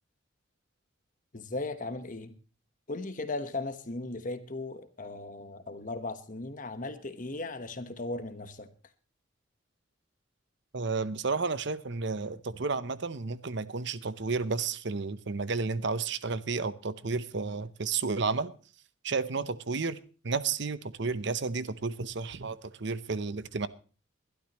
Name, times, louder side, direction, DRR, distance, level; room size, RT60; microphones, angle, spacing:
voice 1, 1.3-2.3 2.9-8.7, left 2 dB, 40° left, 1.2 m, -37 dB
voice 2, 10.7-18.5 19.0-23.7, right 4 dB, 55° right, 0.8 m, -32 dB
21.5 x 12.0 x 3.1 m
head